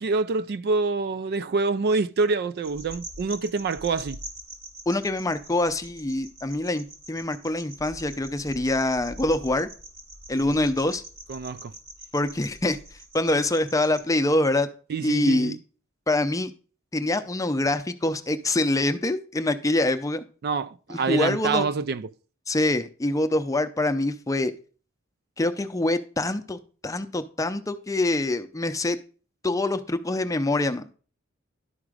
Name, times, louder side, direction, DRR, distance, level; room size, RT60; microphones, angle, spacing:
voice 1, 0.0-4.2 11.3-11.7 14.9-15.6 20.4-22.1, right 4 dB, 50° right, 0.4 m, -26 dB
sound 1, 2.6-14.0, right 1 dB, 75° right, 2.5 m, -44 dB
voice 2, 4.9-9.7 10.3-11.0 12.1-12.8 13.1-14.7 15.0-15.6 16.1-16.5 16.9-20.2 20.9-21.6 22.5-24.5 25.4-29.0 29.4-30.9, left 2 dB, 15° left, 0.6 m, -25 dB
11.5 x 4.9 x 4.9 m
head